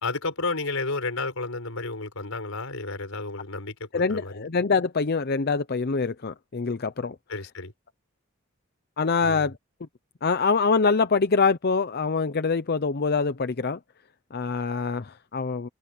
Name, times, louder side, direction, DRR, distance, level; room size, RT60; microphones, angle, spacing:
voice 1, 0.0-4.5 7.3-7.7 9.2-9.5, left 3 dB, 85° left, 4.5 m, -32 dB
voice 2, 3.9-7.2 9.0-9.5 10.2-13.8 14.3-15.7, left 4 dB, 50° left, 0.7 m, -24 dB
head